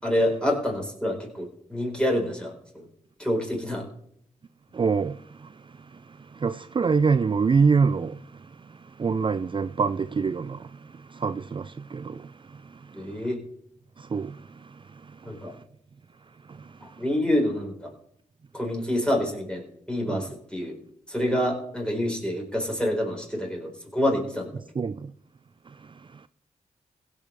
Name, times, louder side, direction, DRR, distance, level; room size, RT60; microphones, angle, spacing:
voice 1, 0.0-2.9 3.2-3.8 12.9-13.4 15.2-15.5 17.0-17.9 18.5-20.8 21.1-24.6, left 1 dB, 5° left, 4.6 m, -27 dB
voice 2, 4.7-13.2 14.0-15.6 16.4-17.0 20.1-20.3 24.8-25.1 25.7-26.3, right 5 dB, 35° right, 0.4 m, -27 dB
16.0 x 5.4 x 6.8 m
cardioid pair, 50°, 14 cm